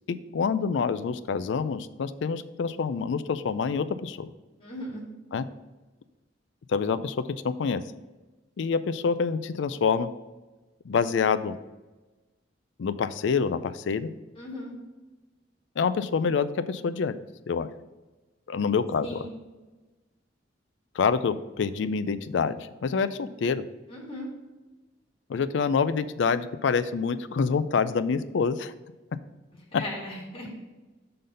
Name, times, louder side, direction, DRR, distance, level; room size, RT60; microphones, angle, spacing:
voice 1, 0.1-4.3 5.3-5.4 6.7-7.2 7.4-7.8 8.6-10.1 10.9-11.6 12.8-14.1 15.8-17.1 17.5-17.7 18.5-19.2 21.0-23.6 25.3-28.7, left 5 dB, 75° left, 13 dB, 0.4 m, -26 dB
voice 2, 4.6-5.0 14.4-14.7 19.0-19.3 23.9-24.3 29.5-30.5, left 1 dB, 30° left, -4 dB, 1.9 m, -38 dB
6.6 x 3.9 x 5.4 m, 1.2 s
head